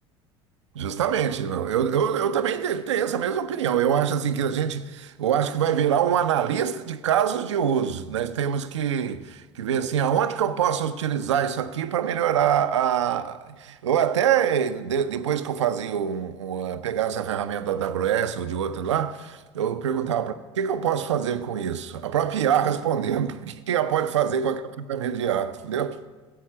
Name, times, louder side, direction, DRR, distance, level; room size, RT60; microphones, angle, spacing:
voice 1, 0.7-24.6 24.9-26.0, right 9 dB, 80° right, 0.6 m, -25 dB
13.5 x 7.9 x 6.0 m
figure-of-eight pair, 65°, 15 cm